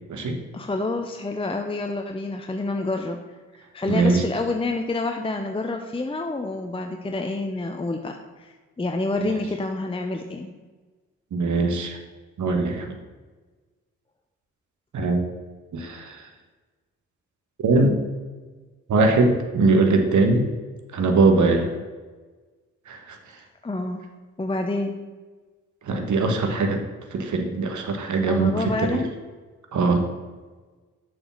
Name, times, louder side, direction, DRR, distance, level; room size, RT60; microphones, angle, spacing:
voice 1, 0.5-3.2 3.7-10.5 23.6-24.0 24.4-25.0 28.3-29.1, left 2 dB, 15° left, 4 dB, 0.8 m, -28 dB
voice 2, 3.9-4.2 9.2-9.3 11.3-12.0 12.4-12.9 14.9-15.2 15.7-16.2 17.6-18.0 18.9-20.5 20.9-21.7 22.9-23.2 25.8-26.8 27.1-29.0 29.7-30.0, right 3 dB, 55° right, 5 dB, 1.5 m, -21 dB
6.9 x 5.2 x 7.2 m, 1.3 s
hypercardioid pair, 40°, 36 cm